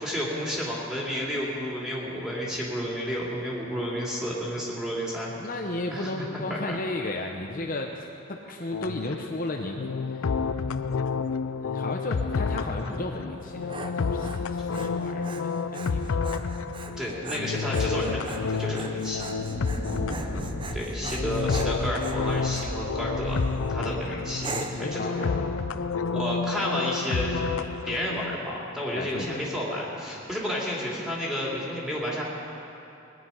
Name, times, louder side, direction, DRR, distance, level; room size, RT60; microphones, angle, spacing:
voice 1, 0.0-5.3 5.9-6.8 17.0-19.2 20.7-23.4 23.7-24.5 24.8-25.3 26.1-27.4 27.9-32.2, equal, 5° right, -5 dB, 2.7 m, -31 dB
voice 2, 5.4-10.3 10.7-11.3 11.6-16.3 19.8-20.7 23.8-24.0 24.5-25.5 28.9-29.4, left 2 dB, 45° left, 2 dB, 0.8 m, -35 dB
sound 1, 8.7-28.4, left 5 dB, 90° left, 0.5 m, -30 dB
Dog, 13.3-22.8 23.3-23.7 24.4-24.9, right 3 dB, 25° right, 0.7 m, -41 dB
Thunder, 19.1-25.7, equal, 45° right, 2.3 m, -37 dB
20.0 x 10.0 x 5.6 m, 2.8 s
head